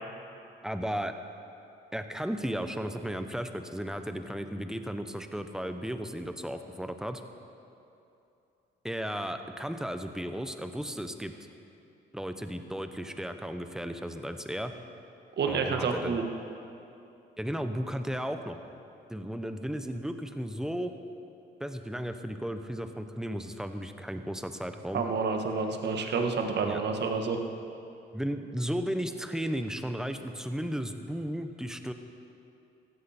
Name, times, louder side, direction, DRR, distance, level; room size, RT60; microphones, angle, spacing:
voice 1, 0.6-1.1 1.9-7.2 8.8-11.3 12.1-14.7 15.5-16.2 17.4-18.6 19.1-20.9 21.6-25.0 26.6-26.8 28.1-31.9, equal, 5° right, 7 dB, 1.0 m, -34 dB
voice 2, 15.4-16.2 24.9-27.4, right 5 dB, 60° right, 4 dB, 1.6 m, -29 dB
16.0 x 14.0 x 4.4 m, 2.8 s
cardioid pair, 90°, 20 cm